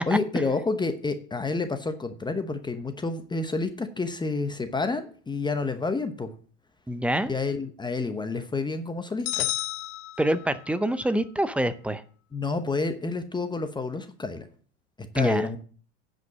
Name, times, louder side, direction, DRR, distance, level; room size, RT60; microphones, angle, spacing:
voice 1, 0.1-6.3 7.3-9.5 12.3-14.5 15.1-15.6, left 3 dB, 10° left, 9 dB, 0.9 m, -29 dB
voice 2, 6.9-7.3 10.2-12.0 15.2-15.5, right 1 dB, 5° right, 13 dB, 0.5 m, -26 dB
Bell ringing once, 9.3-10.8, left 16 dB, 50° left, 1.0 m, -31 dB
9.4 x 5.2 x 7.2 m, 0.44 s
hypercardioid pair, 105°, 36 cm